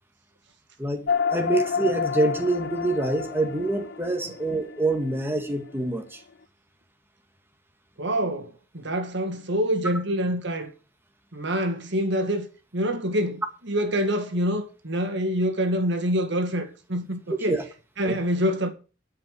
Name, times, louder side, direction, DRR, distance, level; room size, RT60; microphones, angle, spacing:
sound 1, 1.1-5.8, left 6 dB, 60° left, 0.6 m, -29 dB
voice 1, 1.3-6.2 17.5-17.6 18.0-18.2, right 2 dB, 10° right, 1.8 m, -26 dB
voice 2, 8.0-10.7 11.3-12.5 12.7-17.6 18.0-18.7, equal, 65° right, 2.1 m, -26 dB
11.5 x 5.7 x 7.6 m
head